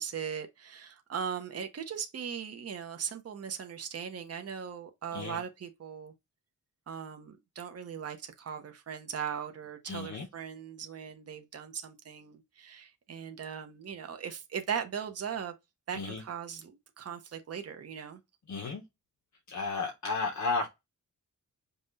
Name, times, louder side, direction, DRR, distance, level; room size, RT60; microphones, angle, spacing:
voice 1, 0.0-6.1 6.9-15.5 15.9-18.2, right 7 dB, 50° right, 0.7 m, -39 dB
voice 2, 9.8-10.3 15.9-16.2 18.5-18.8 19.5-20.7, left 3 dB, 60° left, 0.8 m, -33 dB
5.5 x 2.2 x 4.0 m
wide cardioid pair, 145°, 33 cm